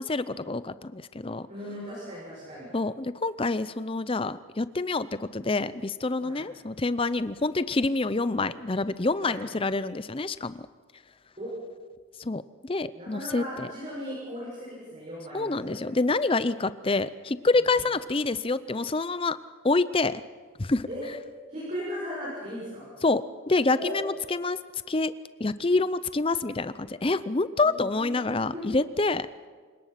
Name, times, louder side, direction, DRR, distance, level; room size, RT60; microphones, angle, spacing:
voice 1, 0.0-1.5 2.7-10.7 12.2-13.7 15.3-19.4 19.6-20.2 20.6-20.9 23.0-24.6 24.9-25.1 25.4-29.3, left 3 dB, 25° left, 15 dB, 0.6 m, -27 dB
voice 2, 1.5-2.8 6.2-6.4 9.2-9.4 11.4-11.5 12.9-16.2 17.6-17.7 20.9-21.0 21.5-22.9 23.7-24.0 27.6-28.3 28.5-28.6, equal, 35° right, -7 dB, 6.9 m, -38 dB
28.5 x 18.0 x 5.9 m, 1.5 s
head